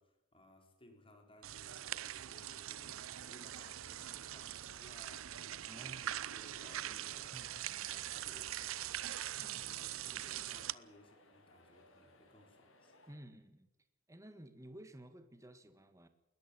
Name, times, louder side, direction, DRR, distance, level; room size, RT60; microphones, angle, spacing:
voice 1, 0.0-5.5 5.8-9.1 9.6-13.0, left 1 dB, 25° left, 3 dB, 4.2 m, -62 dB
sound 1, 1.4-10.7, right 12 dB, 85° right, 0.6 m, -43 dB
sound 2, 3.6-13.2, left 1 dB, 75° left, 5.5 m, -65 dB
voice 2, 5.7-6.2 6.9-7.0 7.3-7.6 9.4-9.8 13.1-13.7 14.1-16.1, right 1 dB, 15° right, 9 dB, 1.6 m, -54 dB
21.0 x 13.0 x 9.9 m, 0.94 s
head